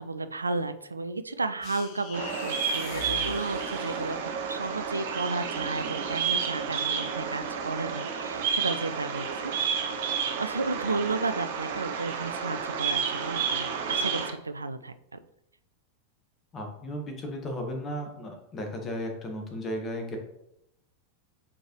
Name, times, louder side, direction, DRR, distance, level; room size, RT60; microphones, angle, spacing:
voice 1, 0.0-4.2 4.5-9.5 10.4-15.2, right 3 dB, 80° right, 11 dB, 0.4 m, -33 dB
sound 1, 1.6-4.5, left 8 dB, 40° left, 0.7 m, -42 dB
Bird vocalization bird call bird song, 2.1-14.3, right 6 dB, 55° right, 0.8 m, -31 dB
voice 2, 16.5-20.2, equal, 25° left, 2 dB, 1.3 m, -35 dB
7.5 x 4.5 x 3.1 m, 0.82 s
figure-of-eight pair, 90°, 0 cm